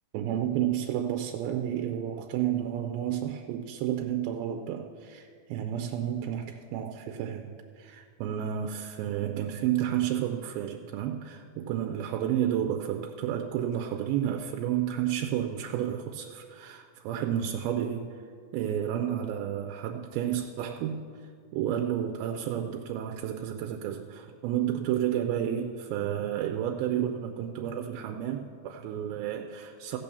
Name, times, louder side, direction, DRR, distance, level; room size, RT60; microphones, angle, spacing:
voice 1, 0.1-18.1 18.5-21.0 21.5-30.0, right 10 dB, 80° right, 4 dB, 2.3 m, -31 dB
15.0 x 6.0 x 6.9 m, 2.2 s
omnidirectional pair, 4.5 m